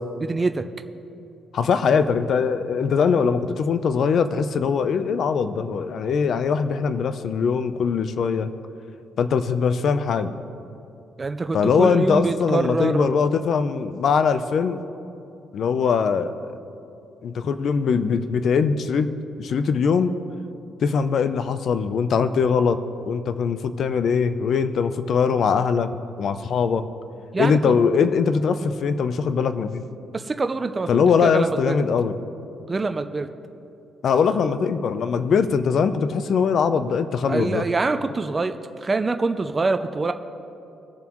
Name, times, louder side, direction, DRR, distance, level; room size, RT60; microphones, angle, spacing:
voice 1, 0.2-0.6 11.2-13.1 27.3-27.8 30.1-31.7 32.7-33.3 37.3-40.1, right 3 dB, 25° right, 7 dB, 0.5 m, -25 dB
voice 2, 1.5-8.5 9.2-10.3 11.5-14.8 15.5-16.4 17.2-19.1 19.4-20.1 20.8-22.8 23.1-25.9 26.2-26.8 27.4-29.8 30.9-32.2 34.0-37.6, left 6 dB, 60° left, 11 dB, 0.6 m, -21 dB
21.0 x 7.0 x 3.1 m, 2.7 s
cardioid pair, 90°, 0 cm